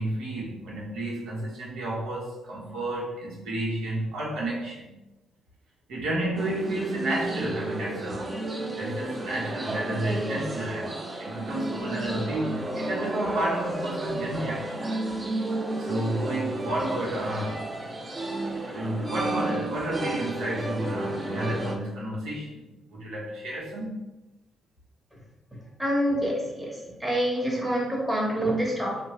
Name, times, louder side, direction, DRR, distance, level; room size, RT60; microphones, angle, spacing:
voice 1, 0.0-4.9 5.9-8.4 8.7-14.8 15.8-17.7 18.7-22.6 22.9-23.9, right 1 dB, 80° right, -4 dB, 1.2 m, -31 dB
Cello And violin Central Park Tunnel, 6.4-21.8, right 1 dB, 30° right, 0.7 m, -32 dB
voice 2, 25.8-26.7 27.0-29.0, equal, 10° right, -3 dB, 1.2 m, -26 dB
4.3 x 2.3 x 3.1 m, 1.0 s
cardioid pair, 90°, 0 cm